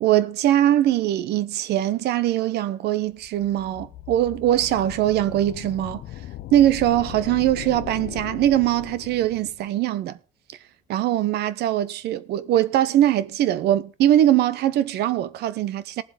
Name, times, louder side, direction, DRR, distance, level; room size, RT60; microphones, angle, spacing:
voice 1, 0.0-6.0 6.5-10.2 10.9-16.0, right 12 dB, 75° right, 0.8 m, -21 dB
sound 1, 3.2-9.7, left 14 dB, 65° left, 0.5 m, -38 dB
18.5 x 7.6 x 3.8 m
cardioid pair, 110°, 17 cm